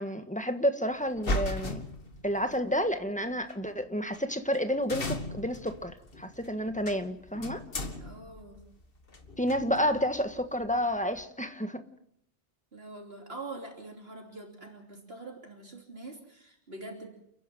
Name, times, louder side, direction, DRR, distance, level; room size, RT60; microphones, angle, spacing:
voice 1, 0.0-1.8 2.2-7.6 9.4-11.8, equal, 5° left, 7 dB, 1.5 m, -30 dB
sound 1, 1.1-2.6 3.5-3.6 4.1-4.2 4.5-4.6 4.9-11.2, left 1 dB, 55° left, 1.9 m, -38 dB
voice 2, 8.0-8.6 12.7-17.1, right 2 dB, 60° right, 1 dB, 3.3 m, -44 dB
30.0 x 11.0 x 9.3 m, 0.72 s
omnidirectional pair, 1.1 m